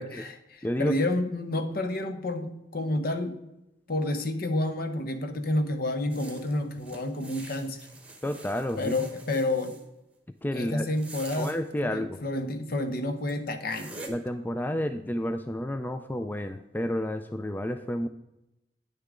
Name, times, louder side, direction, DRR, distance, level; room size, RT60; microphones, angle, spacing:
voice 1, 0.0-3.4 3.9-7.9 8.8-9.8 10.5-11.5 11.8-14.0, left 1 dB, 55° left, 8 dB, 0.9 m, -30 dB
voice 2, 0.6-1.0 8.2-8.9 10.4-10.9 11.3-12.2 14.1-18.1, left 1 dB, 10° left, 9 dB, 0.3 m, -30 dB
sound 1, 6.1-9.8 10.8-11.6 12.7-12.8 13.3-13.4 13.7-14.1, right 2 dB, 5° right, 1.1 m, -46 dB
9.2 x 6.7 x 3.7 m, 0.90 s
head